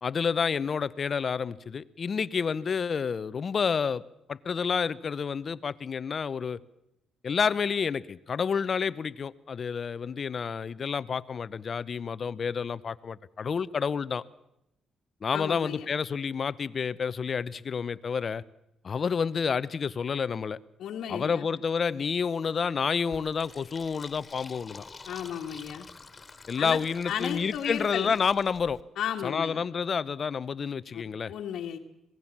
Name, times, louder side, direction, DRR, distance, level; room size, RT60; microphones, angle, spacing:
voice 1, 0.0-4.0 4.3-6.6 7.2-14.2 15.2-18.4 18.8-20.6 21.1-24.8 26.5-28.8 29.2-31.3, left 6 dB, 45° left, 0.8 m, -29 dB
voice 2, 15.3-15.9 20.8-21.5 25.1-25.9 26.6-28.1 29.0-29.6 30.9-31.0 31.3-31.8, left 9 dB, 75° left, 1.6 m, -34 dB
Fill (with liquid), 23.1-28.8, left 4 dB, 25° left, 2.3 m, -49 dB
26.5 x 18.5 x 7.4 m
cardioid pair, 90°, 0 cm